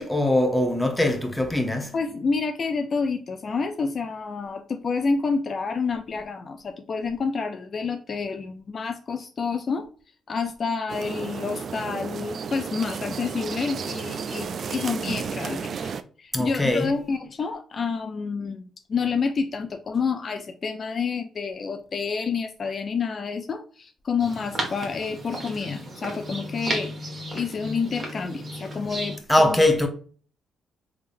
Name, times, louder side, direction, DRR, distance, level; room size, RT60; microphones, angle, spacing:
voice 1, 0.0-1.9 16.3-16.9 29.3-29.9, left 1 dB, 5° left, 0.8 m, -21 dB
voice 2, 1.9-9.9 10.3-15.9 16.2-29.9, left 5 dB, 45° left, 0.4 m, -29 dB
sound 1, 10.9-16.0, right 6 dB, 55° right, 0.3 m, -33 dB
sound 2, 24.2-29.2, right 1 dB, 35° right, 1.3 m, -34 dB
3.6 x 3.4 x 2.6 m
cardioid pair, 90°, 0 cm